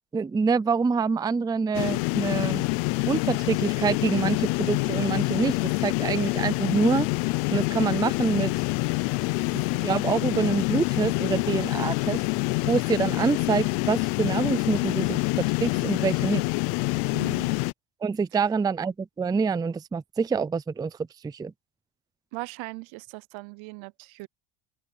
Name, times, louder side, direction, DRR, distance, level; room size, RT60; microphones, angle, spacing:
voice 1, 0.1-2.6 3.1-5.6 5.8-7.1 7.5-8.5 9.8-12.2 12.7-15.2 15.6-16.4 18.0-21.0 21.2-21.5, right 5 dB, 10° right, 0.4 m, -26 dB
sound 1, 1.7-17.7, left 26 dB, 90° left, 0.8 m, -26 dB
voice 2, 17.1-17.5 22.3-24.3, right 25 dB, 70° right, 0.7 m, -39 dB
open air
cardioid pair, 115°, 49 cm